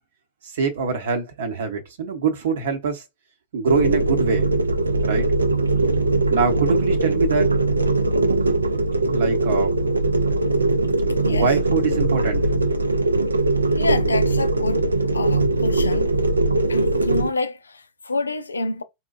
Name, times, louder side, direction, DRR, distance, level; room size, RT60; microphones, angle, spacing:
voice 1, 0.4-3.0 3.5-4.5 5.0-5.3 6.3-7.5 9.0-9.7 11.3-12.4, right 5 dB, 60° right, 0.9 m, -24 dB
sound 1, 3.6-17.3, right 2 dB, 80° right, 0.4 m, -21 dB
voice 2, 10.8-11.5 13.8-14.9 15.1-16.2 16.7-18.8, left 3 dB, 75° left, 0.4 m, -28 dB
4.1 x 2.2 x 2.4 m
figure-of-eight pair, 90°, 0 cm